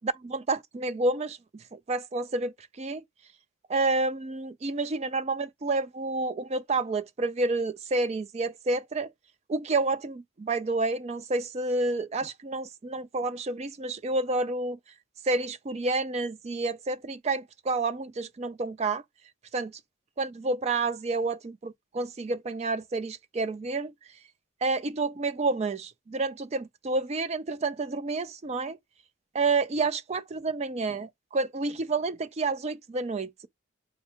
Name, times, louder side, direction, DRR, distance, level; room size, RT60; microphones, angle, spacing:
voice 1, 0.0-3.0 3.7-9.1 9.5-14.8 15.2-19.0 19.5-19.7 20.2-23.9 24.6-28.8 29.3-33.5, right 3 dB, 30° right, 0.3 m, -29 dB
4.6 x 2.3 x 4.3 m
head